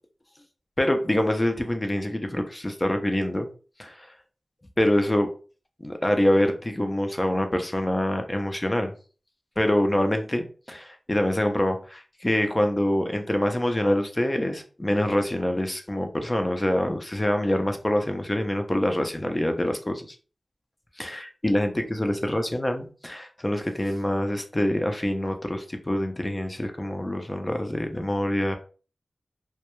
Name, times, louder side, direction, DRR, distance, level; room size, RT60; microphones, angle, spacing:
voice 1, 0.8-3.5 3.8-4.1 4.8-5.3 5.8-8.9 9.6-20.2 21.0-28.6, left 1 dB, 25° left, 5 dB, 0.5 m, -25 dB
2.2 x 2.2 x 2.9 m, 0.37 s
cardioid pair, 45°, 0 cm